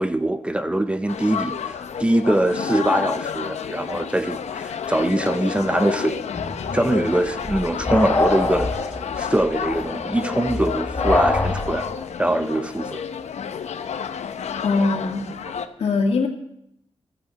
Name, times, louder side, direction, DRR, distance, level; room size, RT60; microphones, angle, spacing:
voice 1, 0.0-6.2 6.7-8.8 9.2-11.9 12.2-13.0, right 1 dB, 10° right, 10 dB, 0.6 m, -23 dB
sound 1, 1.1-15.7, left 7 dB, 85° left, 0.8 m, -30 dB
sound 2, 6.3-12.0, left 2 dB, 25° left, 2.4 m, -25 dB
voice 2, 14.6-15.4 15.8-16.3, left 3 dB, 65° left, 2 dB, 2.2 m, -22 dB
16.0 x 13.0 x 4.1 m, 0.76 s
wide cardioid pair, 150°, 11 cm